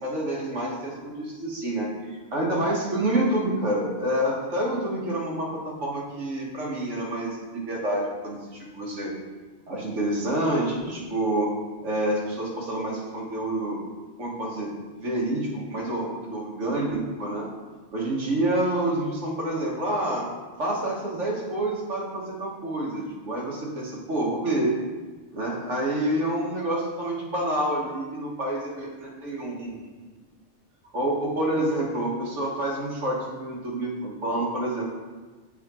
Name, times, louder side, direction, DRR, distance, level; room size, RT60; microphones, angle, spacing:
voice 1, 0.0-9.1 9.7-11.5 11.8-13.8 14.2-17.5 17.9-20.3 20.6-24.8 25.3-29.7 30.9-34.8, right 1 dB, 70° right, -3 dB, 1.7 m, -28 dB
8.0 x 3.6 x 4.2 m, 1.3 s
omnidirectional pair, 1.3 m